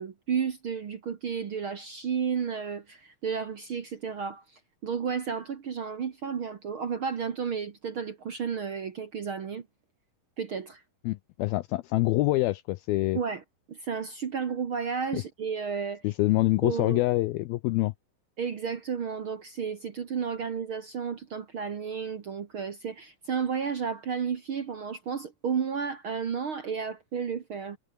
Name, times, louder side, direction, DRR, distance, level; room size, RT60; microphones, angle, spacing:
voice 1, 0.0-4.4 4.8-9.6 10.4-10.8 13.1-13.4 13.7-16.0 16.6-17.0 18.4-27.8, right 6 dB, 70° right, 1.2 m, -32 dB
voice 2, 11.1-13.2 15.1-15.2 16.0-17.9, left 19 dB, 85° left, 2.2 m, -25 dB
omnidirectional pair, 5.0 m